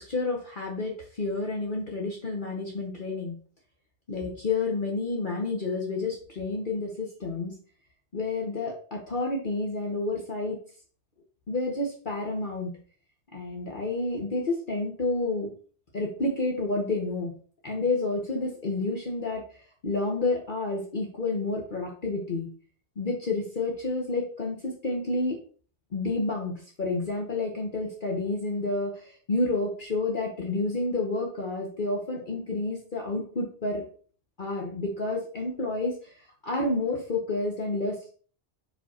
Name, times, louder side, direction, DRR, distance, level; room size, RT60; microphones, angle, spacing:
voice 1, 0.0-3.3 4.1-7.5 8.1-10.6 11.5-12.7 13.3-15.5 15.9-17.3 17.6-22.5 23.0-25.4 25.9-26.5 26.8-33.8 34.4-38.1, left 3 dB, 50° left, -1 dB, 1.3 m, -30 dB
5.6 x 5.1 x 4.3 m, 0.43 s
omnidirectional pair, 1.1 m